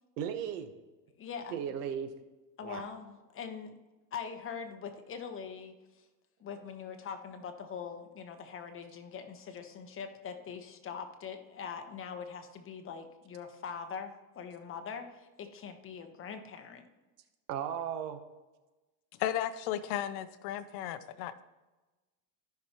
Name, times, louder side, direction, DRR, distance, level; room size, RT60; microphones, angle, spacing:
voice 1, 0.2-0.7 1.5-2.1 2.6-2.8 17.5-18.2, right 9 dB, 80° right, 8 dB, 1.1 m, -36 dB
voice 2, 1.2-1.6 2.6-3.8 4.1-5.7 6.4-16.9, left 6 dB, 25° left, 6 dB, 1.0 m, -42 dB
voice 3, 19.2-21.4, left 11 dB, 55° left, 12 dB, 0.7 m, -34 dB
14.0 x 5.9 x 2.9 m, 1.1 s
supercardioid pair, 125°, 47 cm